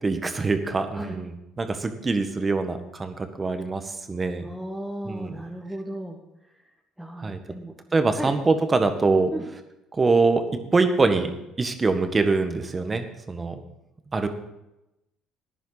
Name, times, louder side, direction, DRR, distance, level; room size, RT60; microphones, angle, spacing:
voice 1, 0.0-4.4 5.0-5.4 7.2-7.4 7.9-9.3 9.9-10.4 10.7-11.3 11.6-13.5 14.1-14.3, right 3 dB, 25° right, 8 dB, 1.6 m, -24 dB
voice 2, 4.4-6.2 6.5-6.6 7.0-7.7 8.1-8.3 9.3-9.4, right 1 dB, 5° right, -2 dB, 1.8 m, -35 dB
14.5 x 10.5 x 4.2 m, 0.90 s
hypercardioid pair, 65°, 0 cm